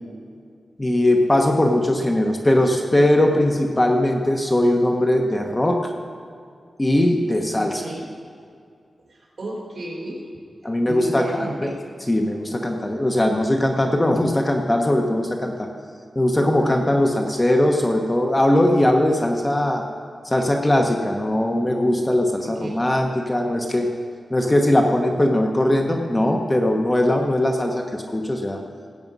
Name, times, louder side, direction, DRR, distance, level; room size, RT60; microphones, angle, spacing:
voice 1, 0.8-5.8 6.8-7.8 10.6-11.7 12.1-15.7 16.1-19.8 20.2-23.9 24.3-28.6, left 1 dB, 15° left, 2 dB, 1.0 m, -20 dB
voice 2, 7.5-8.0 9.1-10.2 10.8-11.8 22.4-22.8, right 1 dB, 55° right, -3 dB, 4.0 m, -32 dB
17.0 x 8.6 x 5.4 m, 2.3 s
wide cardioid pair, 150°, 0 cm